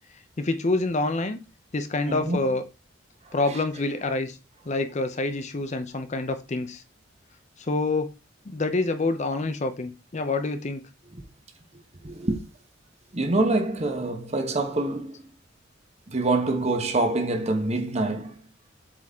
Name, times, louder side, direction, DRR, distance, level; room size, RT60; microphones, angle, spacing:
voice 1, 0.4-1.4 1.7-2.6 3.3-4.4 4.7-6.8 7.6-8.1 8.5-10.8, left 2 dB, 35° left, 0.6 m, -27 dB
voice 2, 2.1-2.6 3.2-3.6 11.1-11.2 12.0-12.4 13.1-15.4 16.1-18.4, right 2 dB, 35° right, 1.1 m, -26 dB
7.5 x 4.1 x 3.6 m
head